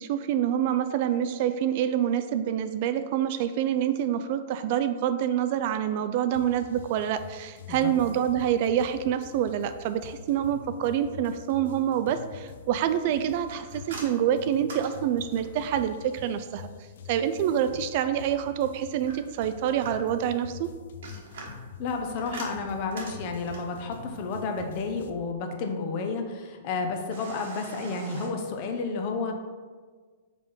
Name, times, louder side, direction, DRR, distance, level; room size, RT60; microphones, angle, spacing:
voice 1, 0.0-16.7 17.1-20.7, right 10 dB, 45° right, 10 dB, 0.3 m, -27 dB
sound 1, 6.3-25.1, left 5 dB, 70° left, 0.5 m, -46 dB
sound 2, 13.5-15.7 19.1-20.3 20.8-23.8 27.1-28.3, right 3 dB, 70° right, 1.5 m, -43 dB
voice 2, 21.8-29.3, left 4 dB, 40° left, 4 dB, 0.8 m, -31 dB
4.9 x 3.6 x 5.3 m, 1.5 s
hypercardioid pair, 155°, 0 cm